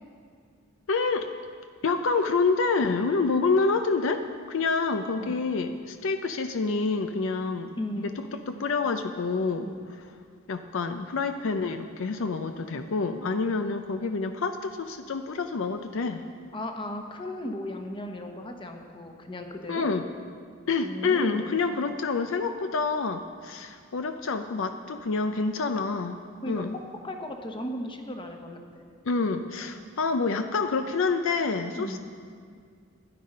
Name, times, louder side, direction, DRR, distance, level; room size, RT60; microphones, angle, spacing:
voice 1, 0.9-1.3 1.8-9.7 10.5-16.2 19.7-20.1 20.7-26.2 26.5-26.8 29.0-32.0, left 4 dB, 65° left, 8 dB, 0.5 m, -27 dB
voice 2, 7.8-8.1 9.6-9.8 16.5-19.9 20.8-21.5 26.4-26.6 27.0-28.9 31.7-32.0, left 1 dB, 25° left, 4 dB, 1.0 m, -36 dB
13.0 x 10.0 x 5.3 m, 2.1 s
head